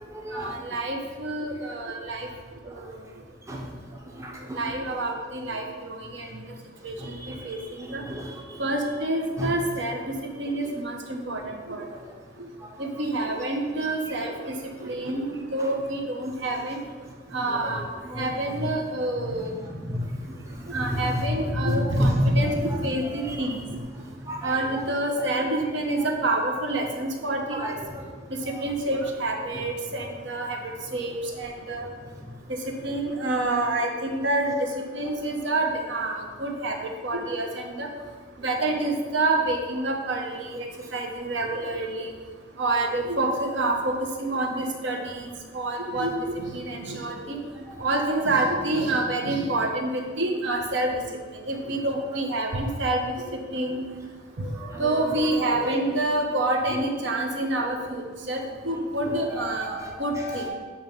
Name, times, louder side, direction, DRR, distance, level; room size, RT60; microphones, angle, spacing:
voice 1, 0.3-2.3 2.7-3.0 4.5-6.5 6.8-8.0 8.6-12.1 12.4-12.5 12.8-16.8 17.3-17.9 18.1-19.5 20.7-23.6 24.4-27.8 28.3-30.6 30.9-31.9 32.5-37.9 38.4-42.1 42.6-45.3 45.5-47.5 47.8-51.0 51.3-53.8 54.4-54.5 54.8-60.5, right 2 dB, 70° right, 2 dB, 0.9 m, -28 dB
voice 2, 4.2-4.6 7.0-7.4 7.9-8.4 9.4-9.5 17.5-17.7 18.1-18.3 19.3-19.4 19.7-20.0 20.9-21.1 21.6-22.4 23.2-23.3 24.3-24.5 27.5-28.0 47.7-47.8 54.4-54.8 55.1-55.8 59.6-60.5, equal, 15° right, -1 dB, 0.6 m, -30 dB
7.1 x 3.0 x 5.2 m, 1.5 s
head